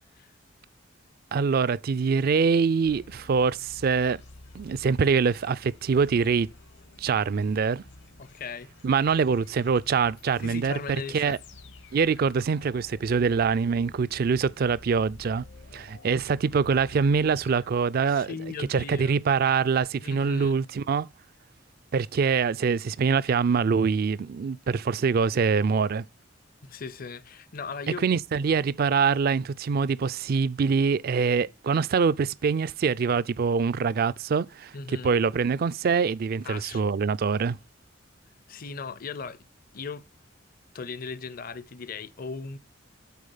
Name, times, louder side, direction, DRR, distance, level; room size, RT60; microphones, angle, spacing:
voice 1, 1.3-4.2 4.5-6.5 7.0-7.8 8.8-11.4 11.9-15.4 15.7-18.3 18.7-21.1 21.9-26.1 28.0-37.6, right 5 dB, 50° right, 0.4 m, -24 dB
sound 1, 2.8-18.5, left 2 dB, 65° left, 1.1 m, -51 dB
voice 2, 8.2-8.7 10.4-11.4 18.1-19.2 20.0-20.5 26.6-28.0 34.7-35.1 36.4-36.8 38.5-39.4 39.7-40.0 40.7-42.6, left 5 dB, 50° left, 0.6 m, -38 dB
8.3 x 4.2 x 5.5 m
head